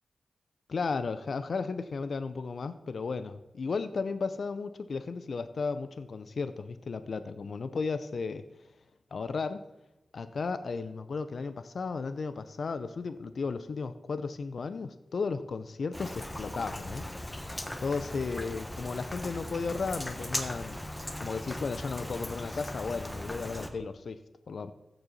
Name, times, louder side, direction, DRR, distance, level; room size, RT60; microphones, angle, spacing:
voice 1, 0.7-8.4 9.1-9.6 10.1-17.1 17.8-20.8 21.2-24.7, left 4 dB, 70° left, 12 dB, 0.5 m, -34 dB
Rain, 15.9-23.7, left 1 dB, 15° left, 1.2 m, -38 dB
15.0 x 7.0 x 4.0 m, 0.95 s
cardioid pair, 55°, 0 cm